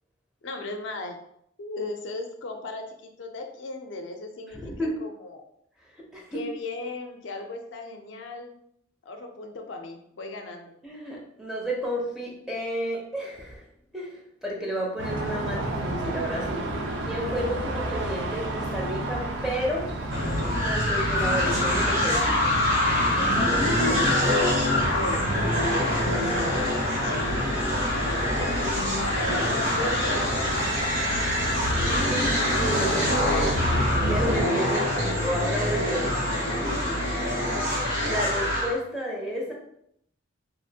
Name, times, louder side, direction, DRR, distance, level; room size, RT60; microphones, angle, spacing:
voice 1, 0.4-1.2 1.6-4.6 5.0-5.4 6.3-8.5 9.0-10.7 23.3-24.2 24.9-25.5 25.8-26.6 27.0-27.1 28.6-30.9 35.8-36.8, left 2 dB, 65° left, 4 dB, 0.4 m, -36 dB
voice 2, 4.5-5.0 6.1-6.4 10.8-13.7 13.9-16.7 17.0-19.9 20.6-22.5 31.9-33.6 34.0-36.1 36.6-37.0 38.0-39.5, equal, 5° right, -3 dB, 0.4 m, -32 dB
sound 1, 15.0-34.4, right 1 dB, 65° right, 0.5 m, -32 dB
sound 2, 20.1-38.7, left 1 dB, 80° right, 1.5 m, -25 dB
2.9 x 2.4 x 2.7 m, 0.73 s
head